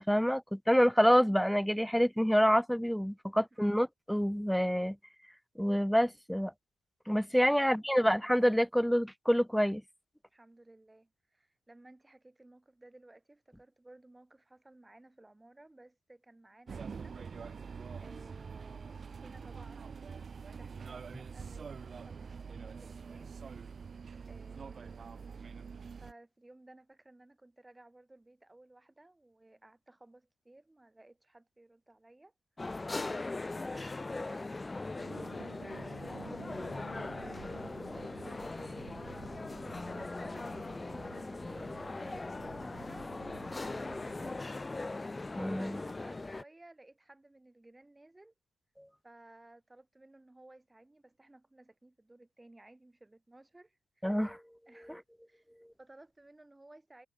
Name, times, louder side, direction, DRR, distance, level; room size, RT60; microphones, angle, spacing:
voice 1, 0.0-5.0 5.6-6.5 7.1-9.8 45.4-45.8 48.8-48.9 54.0-54.4 54.9-55.0, equal, ahead, 0.6 m, -27 dB
voice 2, 10.3-17.7 18.0-23.3 24.3-25.4 26.0-32.3 33.0-36.3 36.8-42.3 42.8-43.1 45.1-48.3 49.0-54.1 54.7-55.0 55.3-57.1, right 2 dB, 15° right, 4.3 m, -58 dB
sound 1, 16.7-26.1, right 5 dB, 45° right, 1.1 m, -45 dB
sound 2, 32.6-46.4, left 3 dB, 20° left, 1.9 m, -40 dB
sound 3, 35.0-44.4, right 12 dB, 75° right, 2.7 m, -52 dB
supercardioid pair, 60°, 0 cm